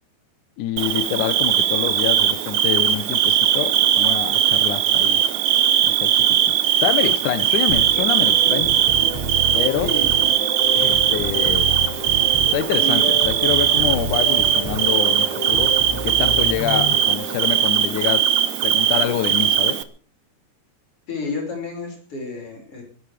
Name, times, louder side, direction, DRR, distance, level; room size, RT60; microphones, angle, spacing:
voice 1, 0.6-5.2 5.9-8.7 9.5-9.9 10.8-11.7 12.5-18.3 18.6-19.8, left 11 dB, 80° left, 1.8 m, -26 dB
Bird / Cricket, 0.8-19.8, right 11 dB, 90° right, 1.6 m, -19 dB
sound 1, 7.7-17.8, equal, 10° right, 5.4 m, -30 dB
voice 2, 9.8-10.4 12.8-13.0 21.1-22.8, left 3 dB, 30° left, 6.7 m, -30 dB
23.5 x 11.0 x 5.1 m
omnidirectional pair, 4.9 m